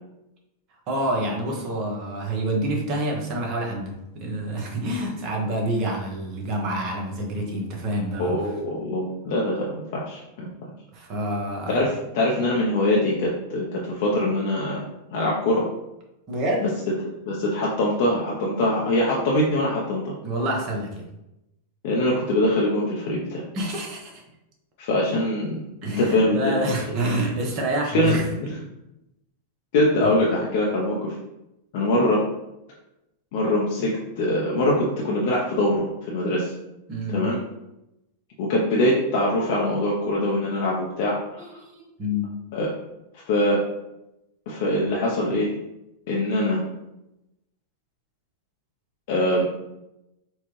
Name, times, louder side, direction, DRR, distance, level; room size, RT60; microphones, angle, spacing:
voice 1, 0.9-8.4 10.9-11.8 16.3-16.7 20.2-21.1 23.5-24.2 25.8-28.3 30.0-30.1 36.9-37.3 41.4-42.3, right 1 dB, 45° right, -1 dB, 1.2 m, -27 dB
voice 2, 8.2-10.7 11.7-14.8 15.1-15.6 17.3-20.1 21.8-23.4 24.8-25.6 26.0-26.4 27.9-28.6 29.7-31.1 31.7-32.2 33.3-33.9 34.2-36.5 37.1-37.4 38.4-41.5 42.5-42.7 43.3-43.6 44.5-45.5 46.1-46.6 49.1-49.4, left 1 dB, 60° left, -3 dB, 0.8 m, -23 dB
4.4 x 2.4 x 3.2 m, 0.91 s
hypercardioid pair, 105°, 0 cm